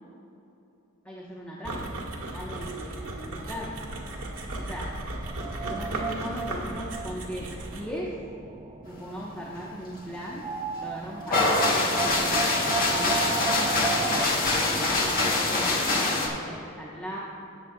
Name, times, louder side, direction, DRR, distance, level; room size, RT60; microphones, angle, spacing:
voice 1, 1.1-1.9 2.3-3.7 4.7-4.9 5.6-8.1 8.9-10.5 10.8-12.4 12.9-13.8 14.5-17.2, equal, 10° left, -5 dB, 1.1 m, -38 dB
sound 1, 1.6-8.0, right 1 dB, 80° right, 1.7 m, -36 dB
sound 2, 2.1-14.3, right 4 dB, 25° right, 0.3 m, -36 dB
sound 3, 11.3-16.3, left 2 dB, 45° left, 1.7 m, -24 dB
18.0 x 8.2 x 2.3 m, 2.9 s
head